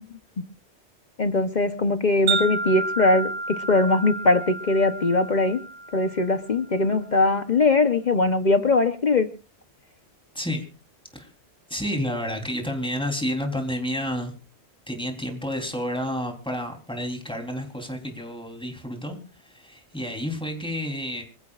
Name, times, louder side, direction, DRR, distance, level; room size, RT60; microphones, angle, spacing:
voice 1, 1.2-5.6 5.9-9.3, left 3 dB, 45° left, 9 dB, 1.0 m, -21 dB
Wind chime, 2.3-6.6, right 3 dB, 85° right, 2.1 m, -30 dB
voice 2, 10.3-10.7 11.1-11.3 11.7-14.3 14.9-21.2, equal, 5° left, 3 dB, 3.5 m, -30 dB
26.0 x 15.0 x 2.5 m, 0.33 s
omnidirectional pair, 1.1 m